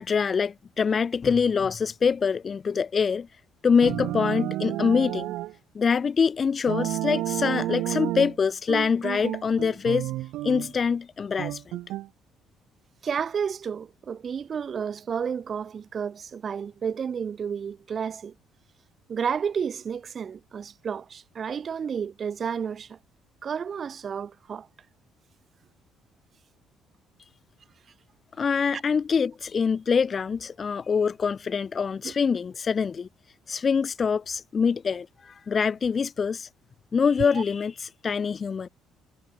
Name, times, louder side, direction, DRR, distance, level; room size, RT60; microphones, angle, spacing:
voice 1, 0.0-3.3 3.6-5.3 5.7-10.1 10.4-11.8 28.4-33.1 33.5-36.5 36.9-38.7, left 6 dB, 25° left, 0.3 m, -25 dB
sound 1, 3.8-5.5 6.7-8.4 8.7-10.7 11.4-12.1, right 16 dB, 75° right, 0.4 m, -30 dB
voice 2, 13.0-18.3 19.1-23.0 23.4-24.7 28.7-28.8 32.0-32.1 37.4-37.5, right 7 dB, 30° right, 1.8 m, -31 dB
cardioid pair, 170°, 0 cm